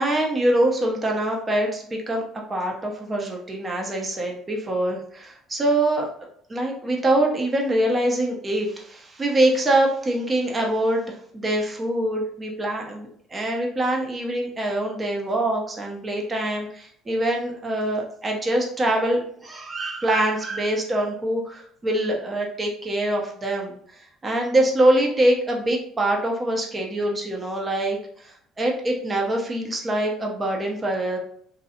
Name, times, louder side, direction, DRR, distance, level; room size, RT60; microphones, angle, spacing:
voice 1, 0.0-2.2 2.5-6.1 6.5-31.2, right 1 dB, 30° right, 1 dB, 0.9 m, -24 dB
3.0 x 2.7 x 2.8 m, 0.63 s
hypercardioid pair, 60°, 0 cm